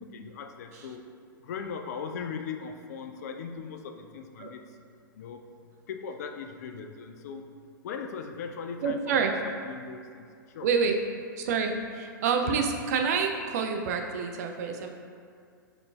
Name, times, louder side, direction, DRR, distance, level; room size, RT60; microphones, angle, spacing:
voice 1, 0.1-1.0 1.4-4.6 5.1-5.4 5.9-7.5 7.8-10.7, left 6 dB, 50° left, 5 dB, 0.3 m, -39 dB
voice 2, 8.8-9.3 10.6-11.0 11.4-14.9, right 5 dB, 50° right, 4 dB, 0.4 m, -27 dB
5.4 x 3.9 x 2.2 m, 2.3 s
figure-of-eight pair, 105°, 11 cm